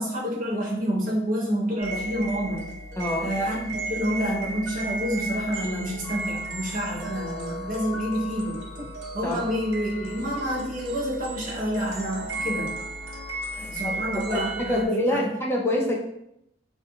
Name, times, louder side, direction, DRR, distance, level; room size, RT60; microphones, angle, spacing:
voice 1, 0.0-2.7 3.2-8.9 9.1-12.7 13.5-15.3, equal, 45° right, -5 dB, 0.6 m, -28 dB
sound 1, 1.8-14.9, right 2 dB, 90° right, 0.5 m, -34 dB
voice 2, 3.0-3.3 9.2-9.5 13.9-16.0, left 1 dB, 15° left, -2 dB, 0.4 m, -26 dB
2.6 x 2.3 x 2.7 m, 0.79 s
head